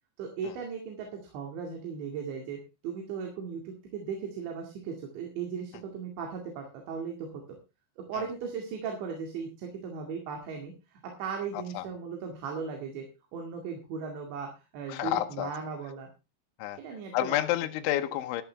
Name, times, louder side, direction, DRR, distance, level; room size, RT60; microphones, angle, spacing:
voice 1, 0.2-7.6 8.0-13.1 13.3-16.1 16.8-17.5, right 6 dB, 75° right, 2 dB, 4.5 m, -37 dB
voice 2, 14.9-15.5 16.6-16.8 17.1-18.4, left 14 dB, 85° left, 6 dB, 3.2 m, -29 dB
13.0 x 13.0 x 3.5 m, 0.30 s
omnidirectional pair, 5.3 m